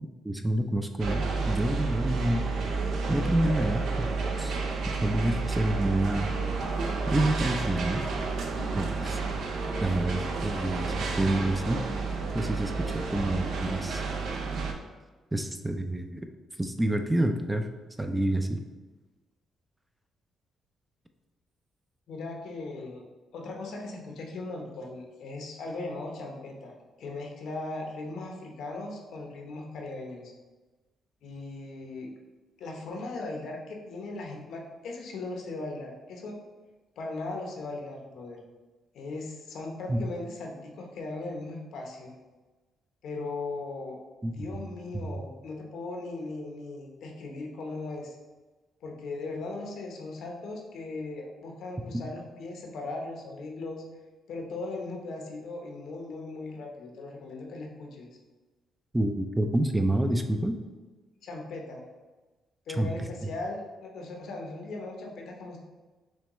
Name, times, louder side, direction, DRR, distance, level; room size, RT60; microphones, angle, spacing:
voice 1, 0.2-2.5 3.1-4.1 4.4-4.6 5.0-6.3 7.1-8.0 8.8-9.2 9.8-11.8 12.3-14.0 15.3-16.3 16.6-17.7 18.0-18.6 39.9-40.0 44.2-44.5 44.9-45.1 51.9-52.0 58.9-60.6 62.8-63.1, right 1 dB, 10° right, 6 dB, 0.3 m, -28 dB
sound 1, 1.0-14.7, right 4 dB, 75° right, 0.5 m, -30 dB
voice 2, 22.1-23.0 23.3-30.3 31.2-32.1 32.6-36.4 37.0-38.4 38.9-42.1 43.0-44.0 44.3-48.2 48.8-53.8 54.3-58.1 61.2-61.8 62.7-65.6, left 2 dB, 75° left, 1 dB, 0.8 m, -38 dB
6.2 x 2.2 x 3.0 m, 1.2 s
cardioid pair, 90°, 0 cm